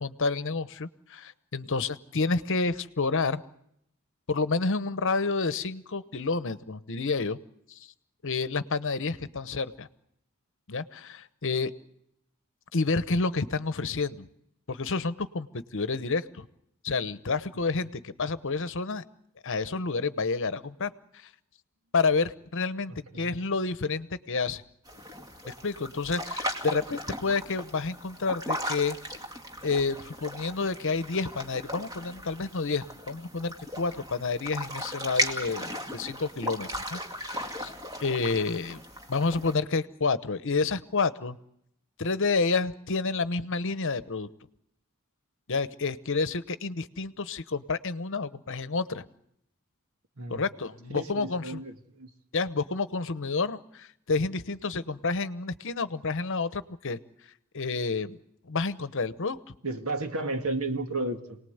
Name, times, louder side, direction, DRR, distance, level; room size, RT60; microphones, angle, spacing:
voice 1, 0.0-3.4 4.3-7.4 7.7-7.8 8.2-9.9 10.7-11.7 12.7-14.3 14.7-16.5 16.8-19.0 19.4-20.9 21.9-24.6 25.5-29.0 29.6-37.7 38.0-38.8 39.1-41.4 42.0-44.3 45.5-49.0 50.3-51.6 52.3-57.0 57.5-58.2 58.5-59.5, left 4 dB, 60° left, 14 dB, 1.0 m, -29 dB
voice 2, 22.9-23.3 50.2-50.4 50.9-52.1 59.6-61.4, right 2 dB, 70° right, 6 dB, 2.0 m, -33 dB
sound 1, 24.8-39.5, equal, 15° right, 2.2 m, -37 dB
28.0 x 19.0 x 8.0 m, 0.76 s
head